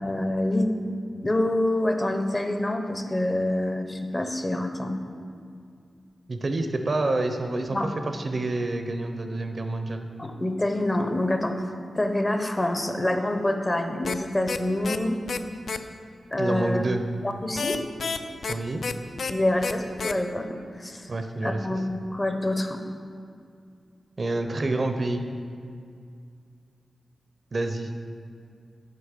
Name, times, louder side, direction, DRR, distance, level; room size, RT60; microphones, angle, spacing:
voice 1, 0.0-0.7 1.2-5.0 7.7-7.9 10.2-11.5 11.9-15.2 16.3-16.8 17.2-17.8 19.3-21.1 21.4-22.8, left 1 dB, 20° left, 5 dB, 0.6 m, -26 dB
voice 2, 6.3-7.8 8.0-10.1 16.4-17.0 18.5-18.8 21.1-21.6 24.2-25.2 27.5-27.9, right 2 dB, 35° right, 6 dB, 0.5 m, -28 dB
sound 1, 14.0-14.2 14.5-14.6 14.8-15.0 15.3-15.4 15.7-15.8 17.6-18.5 18.8-18.9 19.2-19.3 19.6-19.7 20.0-20.1, left 5 dB, 65° left, 0.4 m, -29 dB
8.3 x 5.1 x 6.5 m, 2.3 s
wide cardioid pair, 145°, 0 cm